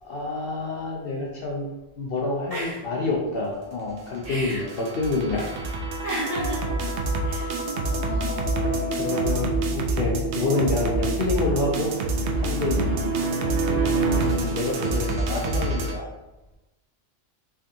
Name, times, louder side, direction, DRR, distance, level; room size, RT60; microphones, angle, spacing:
voice 1, 0.0-1.7 2.0-5.5 7.3-7.6 9.0-11.9 12.4-13.0 13.7-13.9 14.3-16.1, left 3 dB, 60° left, -2 dB, 0.7 m, -28 dB
voice 2, 2.5-2.8 4.2-4.8 5.3-5.5 6.0-6.8 7.2-8.5 10.3-10.6 11.0-11.5 12.8-13.1 13.9-14.1, right 1 dB, 30° right, -8 dB, 1.2 m, -34 dB
sound 1, 4.0-15.9, right 2 dB, 70° right, 0.8 m, -26 dB
3.5 x 3.4 x 2.7 m, 1.0 s
omnidirectional pair, 1.3 m